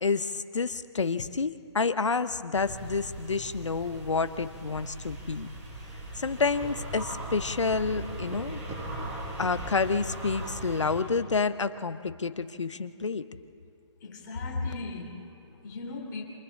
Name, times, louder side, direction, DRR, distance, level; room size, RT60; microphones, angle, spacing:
voice 1, 0.0-5.5 6.2-8.6 9.4-13.2, left 4 dB, 75° left, 12 dB, 0.9 m, -29 dB
sound 1, 2.5-11.0, right 1 dB, 30° right, 7.1 m, -39 dB
voice 2, 14.0-16.2, left 3 dB, 40° left, 1 dB, 3.5 m, -39 dB
28.5 x 26.0 x 3.8 m, 2.4 s
figure-of-eight pair, 135°, 15 cm